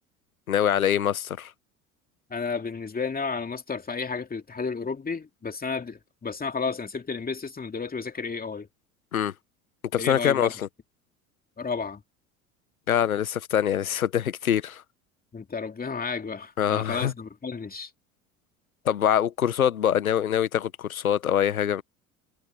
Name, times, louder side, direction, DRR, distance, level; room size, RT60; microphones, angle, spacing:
voice 1, 0.5-1.5 9.1-9.3 9.9-10.7 12.9-14.8 16.6-17.1 18.8-21.8, left 9 dB, 85° left, 1.5 m, -24 dB
voice 2, 2.3-8.7 10.0-10.5 11.6-12.0 15.3-17.9, left 5 dB, 20° left, 2.7 m, -32 dB
figure-of-eight pair, 65°, 42 cm